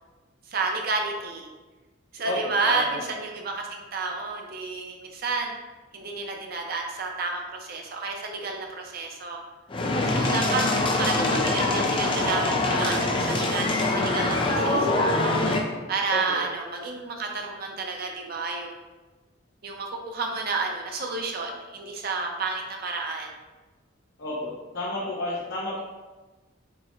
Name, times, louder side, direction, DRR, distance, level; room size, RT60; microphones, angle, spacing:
voice 1, 0.5-1.5 2.1-5.5 5.9-9.4 10.0-15.1 15.9-18.8 19.6-23.4, right 4 dB, 50° right, 2 dB, 0.5 m, -31 dB
voice 2, 2.2-3.0 16.1-16.4 24.2-25.8, left 1 dB, 60° left, -7 dB, 0.8 m, -31 dB
sound 1, 9.7-15.6, left 2 dB, 25° left, 0.4 m, -24 dB
4.5 x 2.1 x 4.4 m, 1.2 s
head